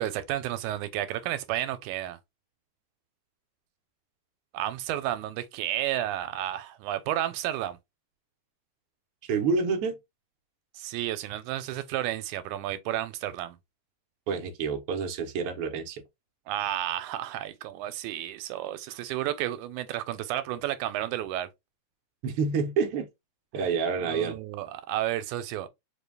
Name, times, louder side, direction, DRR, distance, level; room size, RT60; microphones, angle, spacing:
voice 1, 0.0-2.2 4.5-7.8 10.8-13.6 16.5-21.5 23.5-23.7 24.0-25.7, right 13 dB, 85° right, 2.0 m, -32 dB
voice 2, 9.2-10.0 14.3-16.0 22.2-23.1 23.5-24.4, right 5 dB, 70° right, 1.4 m, -28 dB
5.0 x 2.2 x 3.3 m
omnidirectional pair, 3.5 m